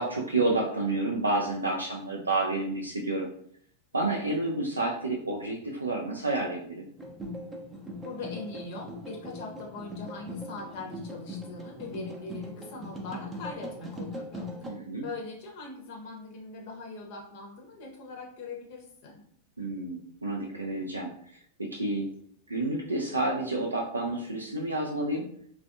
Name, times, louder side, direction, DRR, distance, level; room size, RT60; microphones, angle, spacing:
voice 1, 0.0-3.3 3.9-6.9 14.6-15.0 19.6-22.1 22.5-25.3, right 2 dB, 80° right, -1 dB, 0.3 m, -30 dB
sound 1, 7.0-14.7, left 1 dB, 15° right, 0.5 m, -40 dB
voice 2, 8.0-14.7 15.0-19.2, left 3 dB, 50° left, 0 dB, 0.6 m, -41 dB
3.3 x 2.2 x 2.5 m, 0.65 s
figure-of-eight pair, 90°, 0 cm